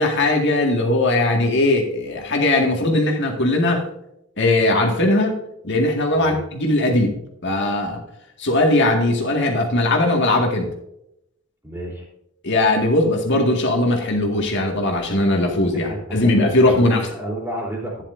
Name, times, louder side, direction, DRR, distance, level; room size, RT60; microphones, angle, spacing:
voice 1, 0.0-3.8 4.4-5.3 5.6-7.1 7.4-8.0 8.4-10.7 12.4-17.1, left 2 dB, 60° left, 1 dB, 1.9 m, -19 dB
voice 2, 11.6-12.1 15.9-16.0 16.7-18.0, right 1 dB, 10° right, -2 dB, 3.5 m, -30 dB
11.5 x 10.0 x 2.6 m, 0.80 s
head